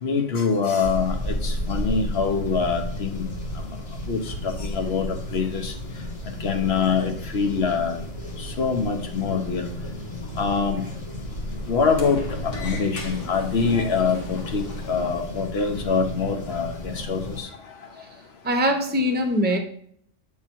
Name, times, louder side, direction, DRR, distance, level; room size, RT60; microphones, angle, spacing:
voice 1, 0.0-3.3 3.5-3.7 4.1-5.7 6.4-8.0 8.4-9.7 10.4-10.8 11.7-17.5 19.5-19.6, left 5 dB, 60° left, 5 dB, 1.2 m, -25 dB
sound 1, 0.8-17.4, left 1 dB, 30° left, 1.3 m, -33 dB
Sliding door, 8.3-15.3, left 3 dB, 85° left, 1.7 m, -41 dB
voice 2, 18.4-19.6, equal, 10° right, 4 dB, 0.8 m, -22 dB
8.4 x 3.7 x 4.5 m, 0.63 s
omnidirectional pair, 1.3 m